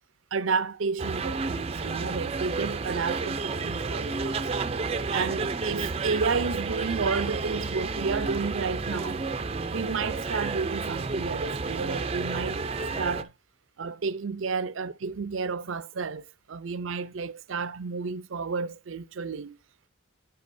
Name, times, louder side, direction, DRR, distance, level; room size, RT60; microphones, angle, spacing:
voice 1, 0.3-4.4 5.1-9.2 9.7-12.6 13.0-13.3 13.8-19.6, right 4 dB, 75° right, 0.6 m, -31 dB
sound 1, 1.0-13.2, right 4 dB, 30° right, 0.5 m, -31 dB
9.5 x 8.4 x 2.6 m
head